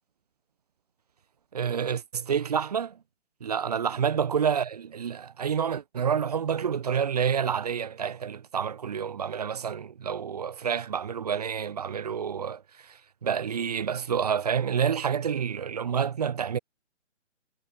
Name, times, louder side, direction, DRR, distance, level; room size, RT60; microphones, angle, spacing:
voice 1, 1.5-2.9 3.4-12.6 13.2-16.6, right 7 dB, 35° right, 0.6 m, -28 dB
figure-of-eight pair, 135°, 36 cm